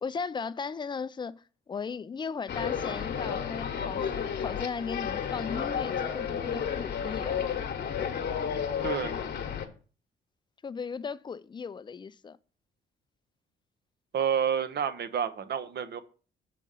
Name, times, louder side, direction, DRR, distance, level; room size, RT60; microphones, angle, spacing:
voice 1, 0.0-7.4 10.6-12.4, left 5 dB, 25° left, 0.4 m, -37 dB
sound 1, 2.5-9.7, left 7 dB, 55° left, 1.1 m, -32 dB
voice 2, 8.8-9.2 14.1-16.0, right 8 dB, 55° right, 0.8 m, -29 dB
6.7 x 3.6 x 5.4 m
cardioid pair, 90°, 20 cm